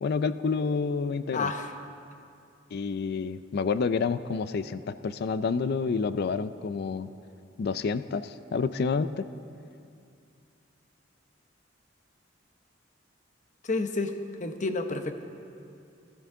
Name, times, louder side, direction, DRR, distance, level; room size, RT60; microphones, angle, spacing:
voice 1, 0.0-1.5 2.7-7.1 7.6-9.2, left 5 dB, 55° left, 13 dB, 0.4 m, -29 dB
voice 2, 1.3-1.7 13.6-14.1 14.4-15.2, left 3 dB, 40° left, 6 dB, 0.8 m, -30 dB
19.0 x 12.5 x 3.7 m, 2.5 s
head